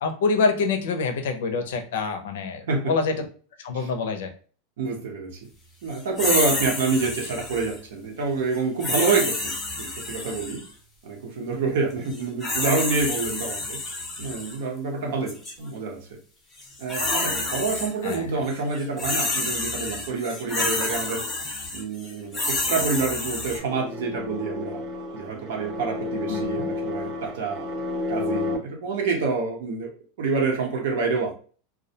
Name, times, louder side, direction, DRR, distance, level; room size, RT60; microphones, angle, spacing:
voice 1, 0.0-3.3 3.6-4.3 18.0-18.3 26.3-26.7, left 4 dB, 80° left, 7 dB, 0.5 m, -26 dB
voice 2, 4.8-5.4 5.8-9.5 9.8-10.6 11.0-13.8 14.2-16.2 16.8-21.2 21.7-24.8 25.1-27.7 28.1-29.9 30.2-31.3, right 4 dB, 80° right, 1 dB, 0.8 m, -27 dB
sound 1, 6.2-7.8 8.8-10.7 12.1-14.6 15.3-15.5 16.6-18.2 18.5-23.6, left 2 dB, 10° left, 0.8 m, -29 dB
sound 2, 22.6-28.6, left 2 dB, 35° right, 0.4 m, -31 dB
2.2 x 2.1 x 2.7 m, 0.40 s
supercardioid pair, 145°, 0 cm